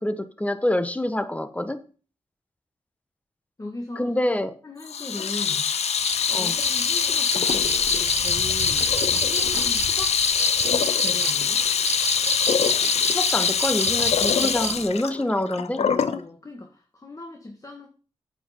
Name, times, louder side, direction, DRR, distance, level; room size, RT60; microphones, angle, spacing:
voice 1, 0.0-1.8 4.0-4.5 6.3-6.5 13.1-15.8, left 1 dB, 10° left, 1.2 m, -26 dB
voice 2, 3.6-4.1 4.6-5.7 6.4-10.2 11.0-11.6 14.3-14.9 15.7-17.9, left 2 dB, 30° left, 1.8 m, -38 dB
Water tap faucet / Sink (filling or washing), 4.9-16.2, left 7 dB, 80° left, 0.7 m, -23 dB
sound 1, 6.0-14.9, right 6 dB, 70° right, 1.2 m, -30 dB
8.5 x 7.9 x 5.2 m
cardioid pair, 55°, 11 cm